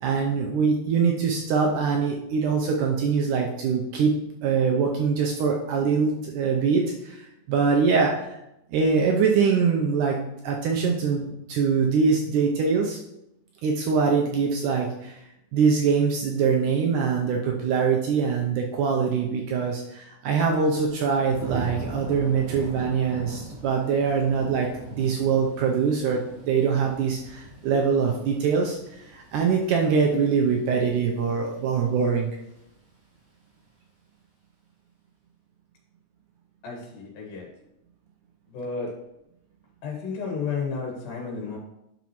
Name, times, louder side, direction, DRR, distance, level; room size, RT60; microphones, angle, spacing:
voice 1, 0.0-4.1 4.4-8.4 8.7-13.0 13.6-15.2 15.5-24.7 24.9-32.3, right 5 dB, 80° right, 1 dB, 2.0 m, -23 dB
Thunder / Rain, 20.9-31.8 32.2-32.7, right 1 dB, 40° right, 2.7 m, -41 dB
voice 2, 36.6-37.5 38.5-39.0 39.8-41.6, left 5 dB, 75° left, -2 dB, 3.5 m, -32 dB
9.2 x 6.0 x 3.0 m, 0.85 s
omnidirectional pair, 4.1 m